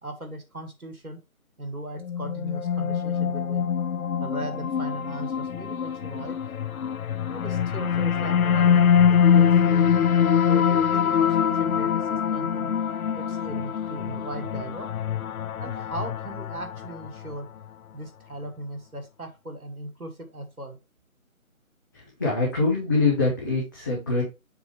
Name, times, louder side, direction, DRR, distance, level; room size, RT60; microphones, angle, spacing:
voice 1, 0.0-1.2 1.6-3.7 4.2-6.4 7.3-10.1 10.5-12.7 13.1-14.9 15.6-17.5 17.9-20.8, right 1 dB, 90° right, 5 dB, 2.0 m, -38 dB
sound 1, 2.0-17.3, left 8 dB, 85° left, 0.5 m, -24 dB
voice 2, 21.9-24.3, left 3 dB, 15° left, -6 dB, 1.2 m, -24 dB
7.0 x 4.7 x 3.1 m, 0.26 s
figure-of-eight pair, 160°, 42 cm